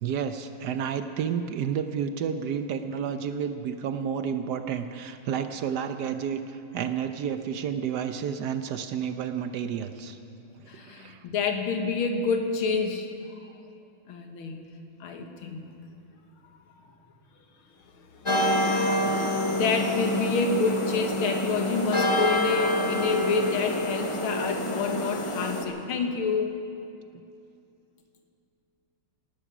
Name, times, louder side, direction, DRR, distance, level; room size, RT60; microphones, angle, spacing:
voice 1, 0.0-10.2 10.6-11.2, right 7 dB, 70° right, 9 dB, 1.0 m, -31 dB
voice 2, 10.7-13.1 14.1-14.6 15.0-15.7 17.9-26.6, left 4 dB, 75° left, 5 dB, 2.1 m, -28 dB
sound 1, 18.3-25.6, left 1 dB, 25° left, 0.7 m, -27 dB
18.5 x 12.0 x 6.1 m, 2.6 s
omnidirectional pair, 2.3 m